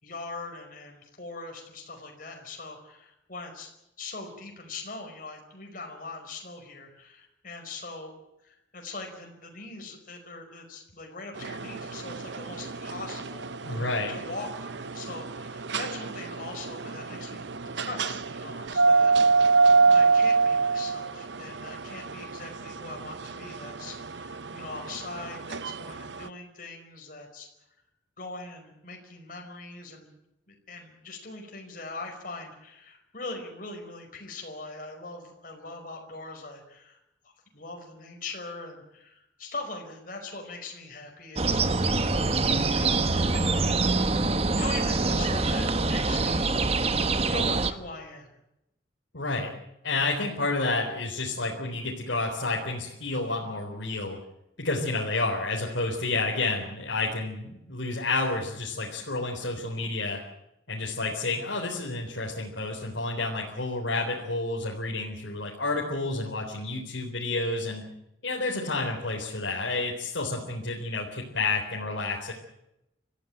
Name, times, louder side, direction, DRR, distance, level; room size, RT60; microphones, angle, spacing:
voice 1, 0.0-3.7 4.0-8.1 8.4-19.5 19.9-27.5 28.2-30.2 30.5-37.0 37.2-44.2 44.5-46.6 47.2-48.3, left 3 dB, 45° left, 2 dB, 5.1 m, -41 dB
sound 1, 11.4-26.3, right 4 dB, 65° right, 0.8 m, -26 dB
voice 2, 13.6-14.1 49.1-49.5 49.8-54.2 54.6-60.2 60.7-67.9 68.2-72.3, left 3 dB, 75° left, -2 dB, 4.0 m, -30 dB
sound 2, 41.4-47.7, right 3 dB, 30° right, 1.1 m, -25 dB
25.5 x 15.0 x 8.9 m, 0.86 s
head